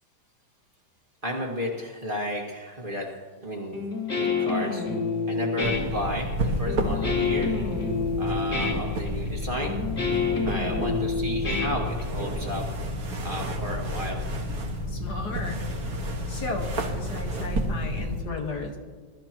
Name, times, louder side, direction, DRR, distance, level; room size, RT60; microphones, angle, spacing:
voice 1, 1.2-3.1 3.4-3.8 4.2-4.8 5.3-7.5 8.2-9.8 10.4-12.6 13.2-14.2, equal, 30° right, -1 dB, 1.9 m, -32 dB
Guitar, 3.7-12.4, left 4 dB, 35° left, 2.9 m, -28 dB
sound 1, 5.6-18.2, equal, 55° right, 1.9 m, -31 dB
voice 2, 14.9-15.6 16.3-18.8, left 3 dB, 60° left, 2 dB, 2.1 m, -35 dB
21.5 x 13.0 x 3.0 m, 1.4 s
omnidirectional pair, 2.0 m